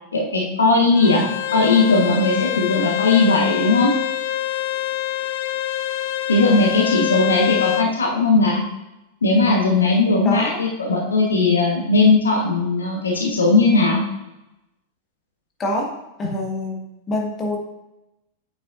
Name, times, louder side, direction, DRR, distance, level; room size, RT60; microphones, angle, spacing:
voice 1, 0.1-3.9 6.3-8.6 9.2-14.0, left 3 dB, 70° left, -1 dB, 1.3 m, -18 dB
Bowed string instrument, 1.0-7.9, left 14 dB, 50° left, 0.4 m, -25 dB
voice 2, 10.2-10.6 15.6-15.9 16.2-16.8 17.1-17.6, left 1 dB, 25° left, 0 dB, 1.6 m, -25 dB
8.4 x 6.9 x 2.6 m, 0.93 s
figure-of-eight pair, 90°, 0 cm